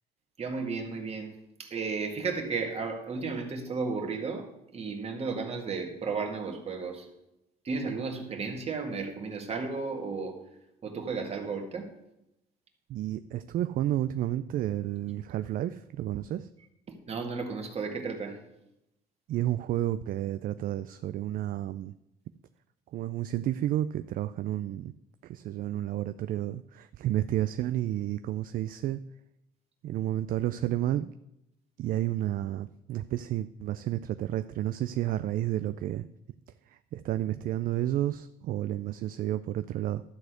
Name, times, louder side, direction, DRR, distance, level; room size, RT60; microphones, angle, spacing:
voice 1, 0.4-1.3 1.6-7.1 7.6-10.4 10.8-11.9 16.9-18.4, right 4 dB, 40° right, 3 dB, 1.9 m, -34 dB
voice 2, 12.9-16.5 19.3-21.9 22.9-24.9 25.2-29.0 29.8-31.1 31.8-36.1 36.7-40.0, right 13 dB, 55° right, 12 dB, 0.4 m, -31 dB
12.0 x 4.2 x 8.0 m, 0.87 s
cardioid pair, 110°, 17 cm